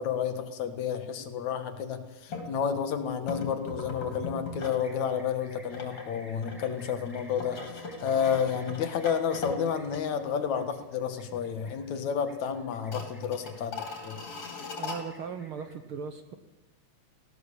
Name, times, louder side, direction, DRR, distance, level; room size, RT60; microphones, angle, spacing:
voice 1, 0.0-14.2, left 7 dB, 70° left, 9 dB, 2.9 m, -31 dB
sound 1, 2.3-2.5 3.3-4.9 5.2-10.5 10.8-10.9 11.3-11.8 12.1-12.2 12.7-15.0, left 4 dB, 50° left, 4.6 m, -39 dB
sound 2, 4.8-15.7, left 1 dB, 5° right, 5.0 m, -56 dB
voice 2, 14.7-16.4, right 6 dB, 65° right, 9 dB, 1.5 m, -38 dB
19.0 x 16.0 x 8.4 m, 1.1 s
omnidirectional pair, 3.4 m